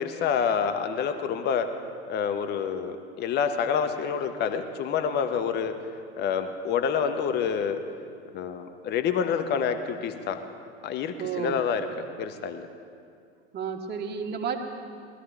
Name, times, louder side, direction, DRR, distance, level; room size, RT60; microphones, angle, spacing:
voice 1, 0.0-1.7 2.1-5.7 6.2-7.8 8.3-10.4 10.8-11.9 12.2-12.6, left 7 dB, 30° left, 8 dB, 0.9 m, -27 dB
voice 2, 11.2-11.6 13.5-14.6, right 7 dB, 30° right, 3 dB, 1.4 m, -31 dB
20.0 x 13.0 x 3.4 m, 2.3 s
figure-of-eight pair, 80°, 33 cm